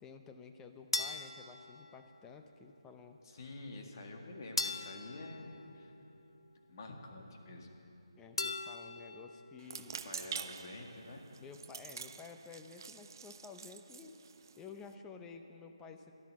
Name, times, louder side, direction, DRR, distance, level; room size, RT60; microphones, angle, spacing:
voice 1, 0.0-3.2 8.2-10.0 11.4-14.2 14.6-16.1, left 5 dB, 10° left, 6 dB, 0.6 m, -52 dB
sound 1, 0.9-2.4 4.6-6.4 8.4-9.5, left 3 dB, 75° left, 0.9 m, -40 dB
voice 2, 3.2-5.9 6.7-7.7 10.0-11.2, left 2 dB, 40° left, 1 dB, 1.9 m, -48 dB
sound 2, 9.6-14.9, right 6 dB, 40° right, 0.4 m, -47 dB
12.5 x 11.5 x 7.6 m, 2.9 s
figure-of-eight pair, 160°, 3 cm